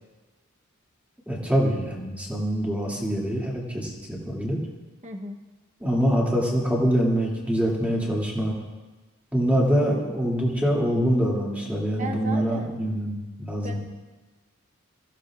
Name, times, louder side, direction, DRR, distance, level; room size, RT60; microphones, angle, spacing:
voice 1, 1.3-4.6 5.8-8.5 9.3-13.8, equal, 5° right, -4 dB, 2.6 m, -24 dB
voice 2, 5.0-5.4 9.5-9.7 12.0-12.7 13.6-13.8, right 2 dB, 35° right, 3 dB, 1.0 m, -35 dB
23.5 x 15.5 x 2.5 m, 1.2 s
head